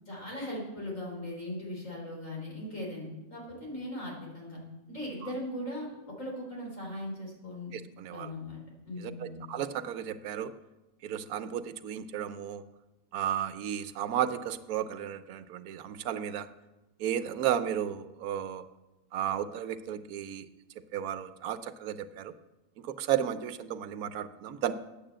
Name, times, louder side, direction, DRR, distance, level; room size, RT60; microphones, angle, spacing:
voice 1, 0.1-4.6 4.9-7.7 8.1-8.6 8.8-9.5, left 1 dB, 55° left, -2 dB, 4.3 m, -39 dB
voice 2, 7.7-8.3 9.0-10.5 11.0-12.6 13.1-16.5 17.0-18.6 19.1-20.5 20.9-22.3 22.8-24.7, right 10 dB, 80° right, 13 dB, 1.1 m, -33 dB
9.9 x 8.9 x 7.5 m, 1.0 s
omnidirectional pair, 1.6 m